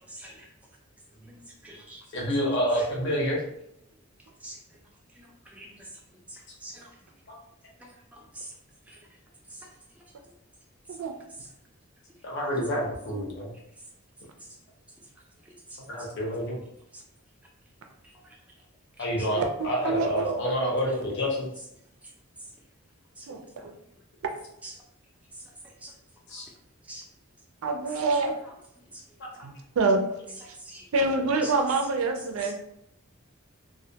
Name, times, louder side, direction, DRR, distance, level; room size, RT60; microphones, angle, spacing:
voice 1, 0.1-0.5 1.2-1.3 1.6-2.0 2.8-2.9 4.4-4.6 5.5-5.7 6.3-6.9 8.1-8.5 8.9-9.0 23.2-23.3 24.6-24.7 25.8-25.9 26.9-27.0 30.6-30.8 31.4-31.5 32.4-32.5, right 1 dB, 5° right, -2 dB, 0.4 m, -44 dB
voice 2, 2.1-3.4 12.2-13.5 15.9-16.6 19.0-21.5 26.3-26.4 29.2-29.3 31.0-31.2, equal, 55° left, -3 dB, 0.6 m, -28 dB
voice 3, 19.4-20.3 23.3-23.7 27.6-28.4 29.4-30.0 30.9-32.5, right 3 dB, 75° right, 4 dB, 0.4 m, -26 dB
2.1 x 2.1 x 2.7 m, 0.77 s
head